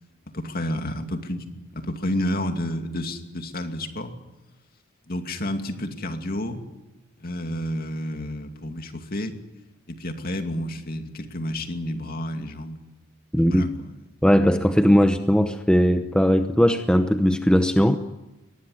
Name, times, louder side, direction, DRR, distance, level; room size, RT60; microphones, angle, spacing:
voice 1, 0.3-4.1 5.1-6.6 7.2-9.4 9.9-12.8 13.5-13.9, left 1 dB, 45° left, 6 dB, 2.6 m, -30 dB
voice 2, 13.3-13.7 14.2-18.0, equal, 5° left, 8 dB, 0.8 m, -19 dB
23.5 x 20.0 x 9.8 m, 1.0 s
head